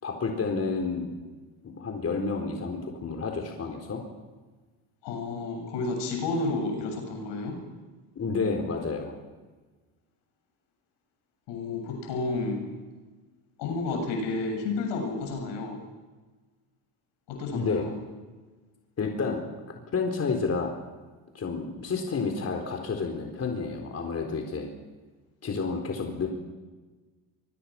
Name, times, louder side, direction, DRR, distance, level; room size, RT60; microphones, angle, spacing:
voice 1, 0.0-1.1 1.6-4.0 8.2-9.1 17.5-17.9 19.0-19.4 19.9-20.7 21.3-24.7 25.4-26.3, left 4 dB, 35° left, 2 dB, 4.1 m, -30 dB
voice 2, 5.0-7.6 11.5-12.6 13.6-15.8 17.3-17.9, left 3 dB, 75° left, 3 dB, 7.7 m, -31 dB
24.5 x 22.5 x 6.0 m, 1.3 s
supercardioid pair, 95°, 43 cm